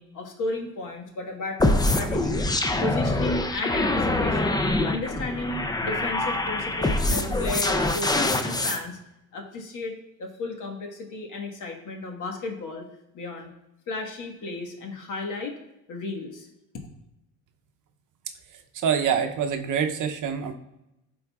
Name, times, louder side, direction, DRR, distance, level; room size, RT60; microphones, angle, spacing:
voice 1, 0.0-2.4 2.8-4.6 4.8-9.0 9.3-12.8 13.1-13.5 13.9-15.6 15.9-16.5, left 2 dB, 55° left, 2 dB, 1.5 m, -34 dB
sound 1, 1.6-8.8, left 2 dB, 10° left, 0.4 m, -24 dB
voice 2, 18.7-20.5, right 7 dB, 55° right, 6 dB, 0.7 m, -25 dB
11.5 x 3.9 x 2.3 m, 0.89 s
supercardioid pair, 85°, 37 cm